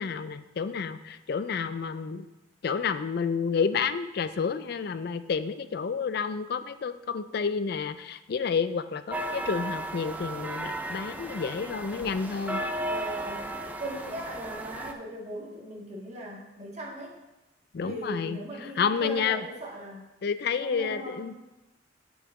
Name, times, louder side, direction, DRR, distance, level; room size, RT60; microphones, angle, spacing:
voice 1, 0.0-2.3 2.6-12.6 17.7-18.4 18.8-19.4 20.2-21.3, left 6 dB, 55° left, 12 dB, 0.4 m, -30 dB
sound 1, 9.1-14.9, right 1 dB, 10° right, 0.5 m, -35 dB
voice 2, 12.8-17.2 17.8-20.1 20.6-21.4, right 1 dB, 35° right, -3 dB, 1.7 m, -39 dB
7.2 x 6.9 x 3.7 m, 1.0 s
head